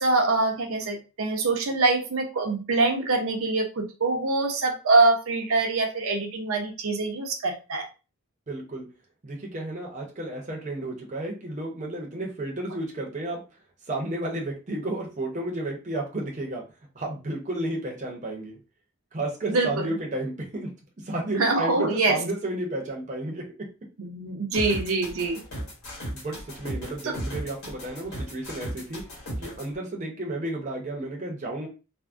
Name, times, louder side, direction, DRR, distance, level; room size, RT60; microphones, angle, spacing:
voice 1, 0.0-7.9 19.5-19.9 21.4-22.2 24.0-25.4 27.0-27.1, right 3 dB, 75° right, 2 dB, 0.6 m, -24 dB
voice 2, 8.5-8.9 9.2-13.4 13.9-16.6 16.9-18.6 19.1-20.7 21.0-23.4 26.1-29.0 29.4-31.7, right 1 dB, 35° right, -1 dB, 0.6 m, -32 dB
sound 1, 24.5-29.6, right 1 dB, 80° left, 1.6 m, -35 dB
3.4 x 2.0 x 2.4 m, 0.31 s
head